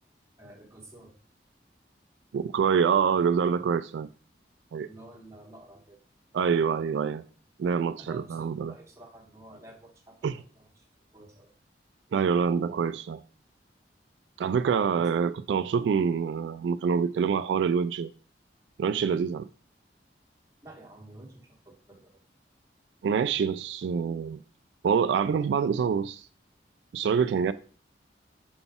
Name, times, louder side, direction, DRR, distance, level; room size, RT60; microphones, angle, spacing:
voice 1, 0.4-1.2 4.8-6.0 8.0-10.8 11.1-11.5 14.6-15.2 20.6-22.2, right 1 dB, 15° right, 1.5 m, -50 dB
voice 2, 2.3-4.1 4.7-4.9 6.3-7.2 7.6-8.7 10.2-10.4 12.1-13.2 14.4-18.1 18.8-19.5 23.0-24.4 24.8-26.3 26.9-27.5, right 6 dB, 80° right, 0.3 m, -26 dB
6.8 x 4.0 x 3.5 m
head